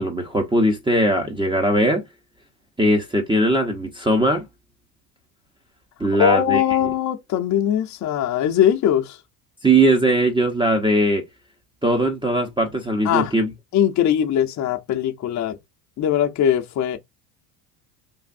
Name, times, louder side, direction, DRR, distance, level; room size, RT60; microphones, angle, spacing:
voice 1, 0.0-2.0 2.8-4.4 6.0-6.6 9.6-11.2 11.8-13.5, right 1 dB, 10° right, 0.7 m, -19 dB
voice 2, 6.1-9.2 13.0-13.3 13.7-15.6 16.0-17.0, left 10 dB, 40° left, 0.7 m, -20 dB
3.4 x 2.5 x 2.5 m
supercardioid pair, 95°, 48 cm